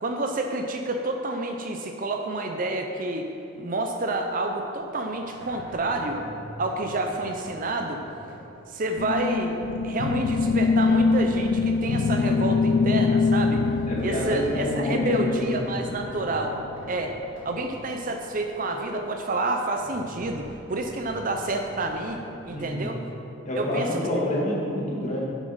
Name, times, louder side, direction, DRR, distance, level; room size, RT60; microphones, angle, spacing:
voice 1, 0.0-3.3 3.6-6.2 6.6-8.0 8.7-9.6 9.8-13.6 14.0-16.6 16.9-17.2 17.4-23.0 23.6-23.9, right 2 dB, 40° right, 3 dB, 0.6 m, -29 dB
sound 1, 3.9-4.3 4.6-8.5 8.8-9.2 9.5-13.0 13.4-14.5 14.8-17.7 18.1-18.2 18.9-19.0 19.6-22.7, equal, 70° right, 1.7 m, -45 dB
sound 2, 9.0-16.8, left 4 dB, 60° left, 0.3 m, -24 dB
voice 2, 13.9-15.5 22.5-22.9 23.4-25.2, equal, 35° left, -4 dB, 1.8 m, -28 dB
7.4 x 6.8 x 5.5 m, 2.9 s
head